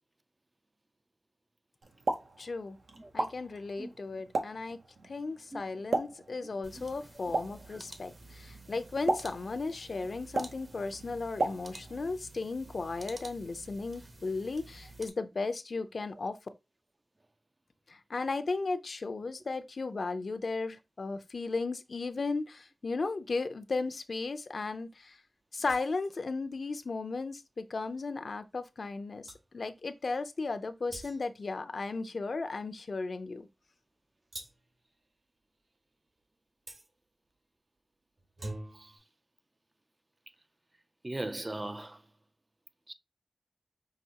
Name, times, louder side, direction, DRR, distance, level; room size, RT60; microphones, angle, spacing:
Explosion, 1.8-12.1, right 2 dB, 90° right, 0.8 m, -37 dB
voice 1, 2.4-2.8 3.1-4.8 5.0-16.3 17.9-25.2 25.5-33.5, left 3 dB, 65° left, 0.5 m, -35 dB
sound 1, 6.6-15.1, right 2 dB, 50° right, 1.0 m, -51 dB
sound 2, 25.6-26.2 28.9-29.0 29.3-29.5 30.9-31.5 34.3-34.7 36.7-36.9 38.2-39.0, right 1 dB, 75° right, 2.3 m, -44 dB
voice 2, 41.0-42.0 42.9-43.0, right 1 dB, 30° right, 0.3 m, -38 dB
5.8 x 2.7 x 2.8 m
wide cardioid pair, 75°, 0 cm